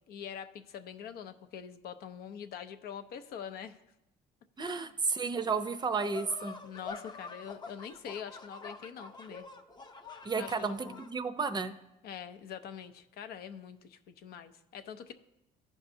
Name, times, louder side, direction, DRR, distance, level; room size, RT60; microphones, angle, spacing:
voice 1, 0.1-3.8 4.6-4.9 6.6-9.5 10.4-11.0 12.0-15.1, left 8 dB, 70° left, 10 dB, 0.6 m, -44 dB
voice 2, 4.6-6.6 10.2-11.8, right 4 dB, 25° right, 10 dB, 0.5 m, -32 dB
sound 1, 6.0-11.1, left 4 dB, 25° left, 0.7 m, -46 dB
14.5 x 5.4 x 2.6 m, 0.91 s
cardioid pair, 110°, 17 cm